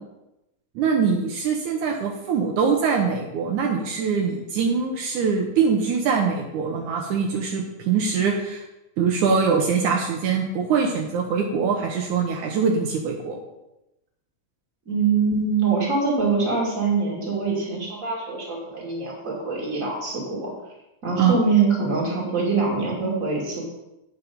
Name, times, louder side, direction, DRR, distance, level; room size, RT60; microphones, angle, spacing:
voice 1, 0.8-8.6 9.0-13.4 21.2-21.3, right 5 dB, 75° right, 1 dB, 2.4 m, -23 dB
voice 2, 14.9-20.5 21.0-23.7, right 4 dB, 25° right, -3 dB, 3.0 m, -24 dB
9.1 x 7.6 x 5.4 m, 0.92 s
omnidirectional pair, 3.6 m